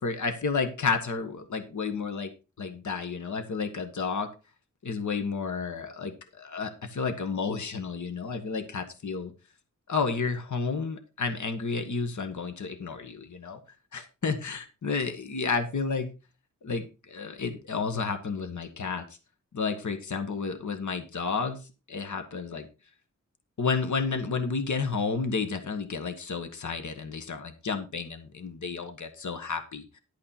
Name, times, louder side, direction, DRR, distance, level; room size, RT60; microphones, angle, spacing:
voice 1, 0.0-2.3 2.6-4.3 4.8-9.3 9.9-13.6 13.9-16.1 16.6-19.1 19.5-22.7 23.6-30.0, left 4 dB, 70° left, 8 dB, 1.6 m, -31 dB
12.0 x 8.6 x 4.3 m, 0.31 s
wide cardioid pair, 65°, 31 cm